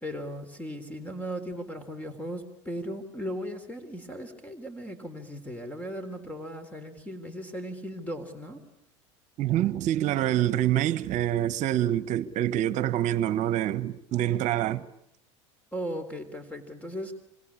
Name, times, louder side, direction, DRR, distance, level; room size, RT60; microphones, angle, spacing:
voice 1, 0.0-8.6 15.7-17.1, equal, 10° left, 3.7 m, -37 dB
voice 2, 9.4-14.8, right 12 dB, 50° right, 1.3 m, -26 dB
26.5 x 25.5 x 8.7 m
hypercardioid pair, 90°, 16 cm